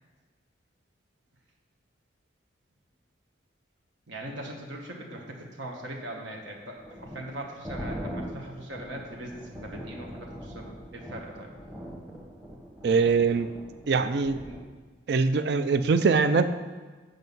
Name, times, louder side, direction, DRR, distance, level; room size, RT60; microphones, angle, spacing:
voice 1, 4.1-11.5 14.4-14.6, right 1 dB, 70° right, 0 dB, 1.2 m, -40 dB
sound 1, 6.6-14.6, equal, 10° right, 1.1 m, -41 dB
voice 2, 12.8-13.5 13.9-14.4 15.1-16.6, right 4 dB, 55° right, 11 dB, 0.4 m, -23 dB
7.8 x 5.4 x 5.4 m, 1.4 s
head